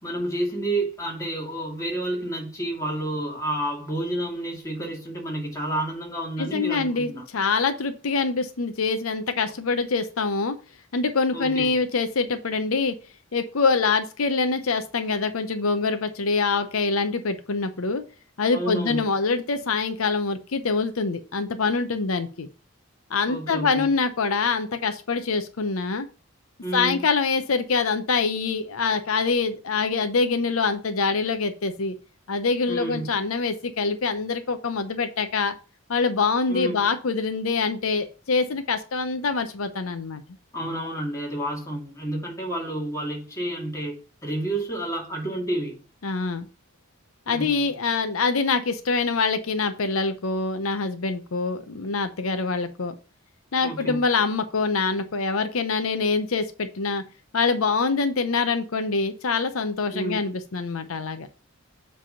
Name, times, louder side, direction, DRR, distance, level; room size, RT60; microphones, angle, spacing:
voice 1, 0.0-7.2 11.3-11.8 18.5-19.1 23.3-23.9 26.6-27.1 32.7-33.1 36.5-36.9 40.5-45.8 47.3-47.7 53.6-54.0 59.9-60.3, right 1 dB, 15° left, 2.2 m, -30 dB
voice 2, 6.4-10.6 10.9-13.0 13.3-18.0 18.4-22.5 23.1-26.1 26.7-32.0 32.3-35.5 35.9-40.2 46.0-46.5 47.3-52.9 53.5-57.0 57.3-61.3, left 4 dB, 85° left, 0.7 m, -25 dB
7.5 x 3.5 x 5.6 m
head